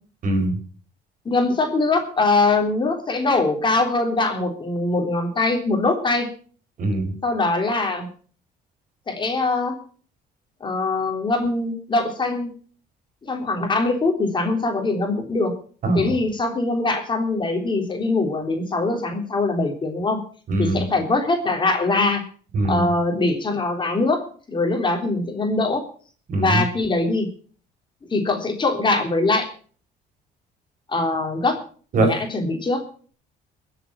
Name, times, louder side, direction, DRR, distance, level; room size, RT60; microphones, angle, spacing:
voice 1, 0.2-0.6 6.8-7.1 15.8-16.1 20.5-20.8 22.5-22.9 26.3-26.6 31.9-32.1, right 2 dB, 55° right, 5 dB, 4.9 m, -21 dB
voice 2, 1.3-6.3 7.2-8.1 9.1-9.8 10.6-12.5 13.2-15.5 15.9-20.2 20.6-22.2 22.7-25.8 26.4-27.3 28.1-29.5 30.9-31.6 31.9-32.8, left 3 dB, 30° left, 3 dB, 3.5 m, -22 dB
21.5 x 7.9 x 5.9 m, 0.44 s
cardioid pair, 110°, 17 cm